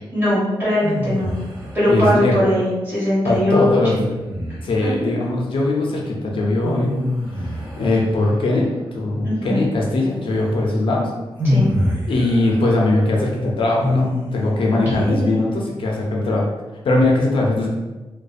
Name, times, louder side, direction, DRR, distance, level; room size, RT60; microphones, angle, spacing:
voice 1, 0.1-1.3 1.7-3.8 9.2-9.6 11.4-11.7 14.7-15.4, equal, 20° right, -9 dB, 1.2 m, -20 dB
sound 1, 0.8-2.0 3.7-4.9 6.6-8.6 10.4-10.5 11.4-14.7, left 1 dB, 40° right, 0.7 m, -25 dB
voice 2, 1.9-2.4 3.2-4.0 4.6-7.0 7.4-11.1 12.1-16.5 16.8-17.7, left 2 dB, 65° left, -2 dB, 0.4 m, -20 dB
2.5 x 2.1 x 2.3 m, 1.1 s
wide cardioid pair, 140°, 10 cm